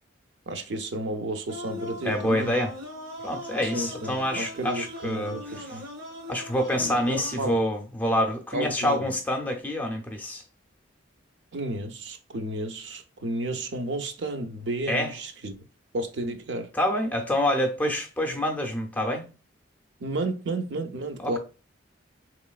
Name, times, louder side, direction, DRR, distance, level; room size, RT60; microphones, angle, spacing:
voice 1, 0.5-2.5 3.7-5.8 6.8-7.6 8.5-9.1 11.5-15.5 15.9-16.7 20.0-21.4, right 2 dB, 60° right, 0.5 m, -32 dB
sound 1, 1.5-7.5, left 1 dB, 85° right, 1.3 m, -40 dB
voice 2, 2.0-2.7 3.2-5.8 6.3-10.4 14.9-15.1 16.7-19.3 21.2-21.4, left 1 dB, 10° left, 0.5 m, -27 dB
3.9 x 3.0 x 2.3 m
head